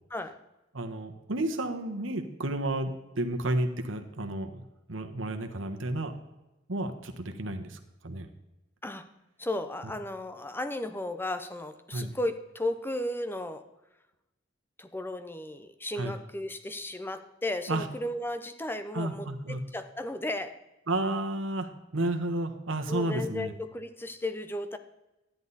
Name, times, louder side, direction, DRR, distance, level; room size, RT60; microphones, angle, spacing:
voice 1, 0.7-6.1 6.7-8.3 11.9-12.1 16.0-16.1 17.7-17.9 18.9-19.6 20.9-23.5, right 1 dB, 80° right, 5 dB, 1.4 m, -32 dB
voice 2, 9.4-13.6 14.8-20.6 22.9-24.8, left 1 dB, 10° left, 10 dB, 0.7 m, -34 dB
13.0 x 10.5 x 4.1 m, 0.97 s
head